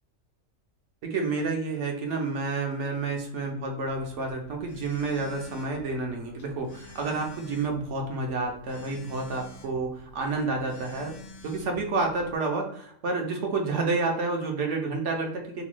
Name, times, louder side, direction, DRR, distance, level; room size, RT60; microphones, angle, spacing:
voice 1, 1.0-11.2 11.4-15.6, right 3 dB, 65° right, 2 dB, 0.9 m, -29 dB
Telephone, 3.8-12.4, left 3 dB, 70° left, 1.0 m, -49 dB
2.9 x 2.2 x 3.0 m, 0.68 s
omnidirectional pair, 1.4 m